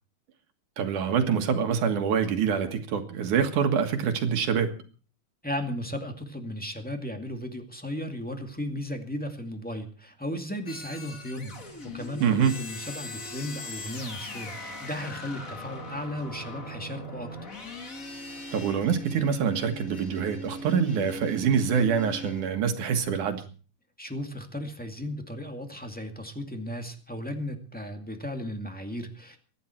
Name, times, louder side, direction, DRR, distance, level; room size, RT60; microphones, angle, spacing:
voice 1, 0.8-4.7 12.2-12.5 18.5-23.4, right 7 dB, 75° right, 3.1 m, -25 dB
voice 2, 5.4-17.5 24.0-29.4, left 1 dB, 5° left, 1.5 m, -35 dB
sound 1, 10.7-22.5, left 1 dB, 30° left, 2.4 m, -40 dB
23.5 x 11.0 x 4.5 m
omnidirectional pair, 3.6 m